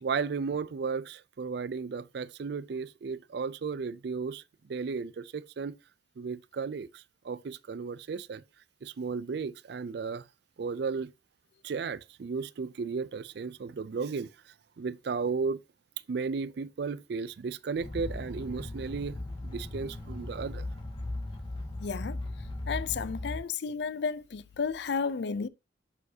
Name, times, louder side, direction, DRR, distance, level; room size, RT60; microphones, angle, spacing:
voice 1, 0.0-4.4 4.7-5.8 6.2-8.4 8.8-10.2 10.6-11.1 11.6-15.6 16.1-19.2 19.4-20.7, right 5 dB, 60° right, 0.4 m, -34 dB
sound 1, 17.8-23.4, left 2 dB, 25° left, 1.5 m, -38 dB
voice 2, 21.8-22.2 22.7-25.5, left 5 dB, 60° left, 0.4 m, -32 dB
11.0 x 4.7 x 2.7 m
head